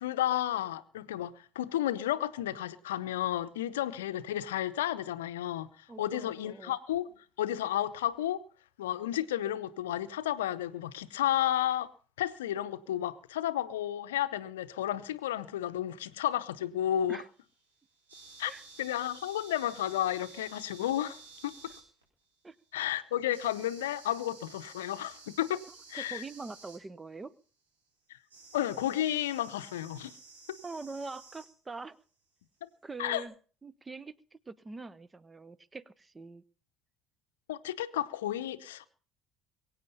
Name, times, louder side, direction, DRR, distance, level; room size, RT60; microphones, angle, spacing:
voice 1, 0.0-8.4 8.8-11.9 12.2-17.2 18.4-18.5 18.8-21.7 22.7-25.6 25.9-26.2 28.5-30.1 32.6-32.7 33.0-33.2 37.5-38.9, left 12 dB, 75° left, 0.7 m, -32 dB
voice 2, 5.9-6.8 17.1-17.3 18.5-18.6 22.4-22.6 25.9-27.3 30.6-32.0 32.8-33.3 33.6-36.4, right 3 dB, 20° right, 0.8 m, -43 dB
sound 1, 17.0-22.2 23.3-26.8 28.3-31.6 33.1-33.2, right 4 dB, 80° right, 4.6 m, -53 dB
22.5 x 8.6 x 5.5 m
figure-of-eight pair, 55°, 0 cm